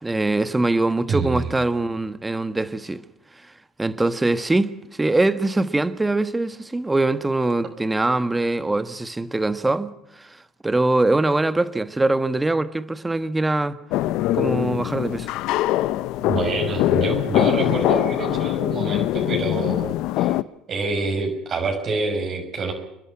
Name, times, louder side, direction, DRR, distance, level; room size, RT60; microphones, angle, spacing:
voice 1, 0.0-3.0 3.8-13.8 14.3-15.3, right 2 dB, 15° right, 1.4 m, -23 dB
voice 2, 1.1-1.5 16.2-20.4 20.7-22.7, right 3 dB, 45° right, 6.0 m, -26 dB
sound 1, 13.9-20.4, left 15 dB, 70° left, 0.7 m, -23 dB
27.5 x 11.0 x 9.7 m
supercardioid pair, 85°, 0 cm